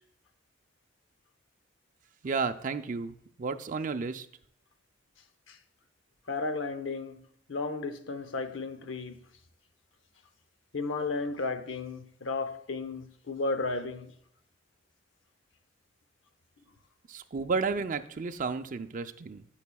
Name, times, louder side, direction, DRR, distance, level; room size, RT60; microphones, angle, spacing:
voice 1, 2.2-4.3 17.1-19.4, right 4 dB, 45° right, 0.5 m, -32 dB
voice 2, 6.3-9.2 10.7-14.1, left 3 dB, 85° left, 0.7 m, -34 dB
12.5 x 5.7 x 2.3 m
head